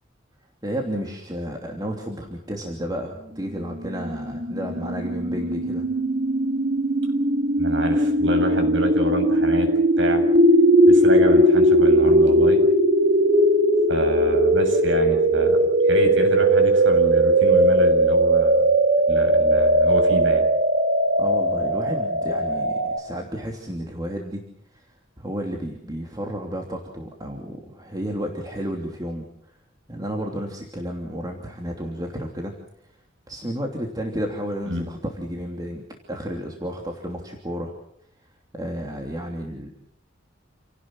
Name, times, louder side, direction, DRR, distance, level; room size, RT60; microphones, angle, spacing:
voice 1, 0.6-5.9 21.2-24.4 24.7-29.3 29.9-32.5 33.3-37.7 38.5-39.7, equal, 20° right, 1 dB, 3.0 m, -32 dB
sound 1, 3.8-23.0, right 1 dB, 55° right, 2.3 m, -19 dB
voice 2, 7.6-9.7 10.0-10.3 10.9-12.6 13.9-18.7 19.1-20.5 34.7-34.9, equal, 70° right, 5 dB, 7.5 m, -28 dB
29.5 x 18.0 x 7.7 m, 0.72 s
head